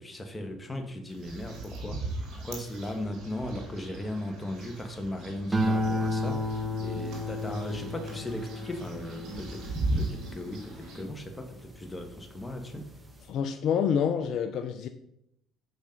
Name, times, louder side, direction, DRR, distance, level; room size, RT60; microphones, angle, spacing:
voice 1, 0.0-2.0 2.3-9.7 9.9-12.9, left 1 dB, 15° left, 4 dB, 1.5 m, -37 dB
sound 1, 1.1-11.0, right 2 dB, 70° right, 2.7 m, -38 dB
sound 2, 5.5-12.0 12.5-13.0, left 1 dB, 20° right, 1.4 m, -32 dB
voice 2, 13.3-14.9, left 7 dB, 65° left, 7 dB, 0.6 m, -27 dB
6.8 x 5.3 x 5.2 m, 0.76 s
supercardioid pair, 85°, 0 cm